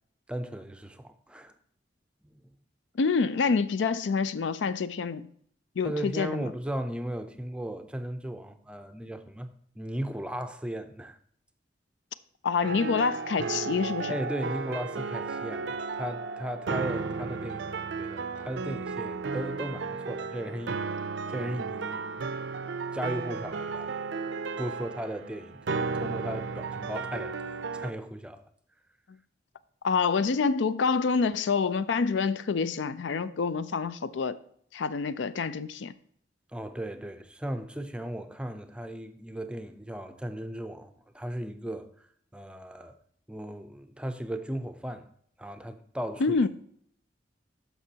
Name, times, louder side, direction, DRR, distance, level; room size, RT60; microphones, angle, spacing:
voice 1, 0.3-1.5 2.4-2.5 5.8-9.5 9.8-11.2 14.1-22.3 22.9-23.9 24.6-28.4 36.5-42.1 42.3-42.9 43.3-45.1 45.4-46.4, right 1 dB, 5° right, 0.5 m, -36 dB
voice 2, 3.0-5.3 5.8-6.5 12.4-14.1 29.8-34.4 34.7-35.9 46.2-46.5, left 5 dB, 80° left, 0.4 m, -27 dB
sound 1, 12.6-27.9, right 4 dB, 80° right, 0.5 m, -34 dB
12.5 x 5.4 x 2.8 m
head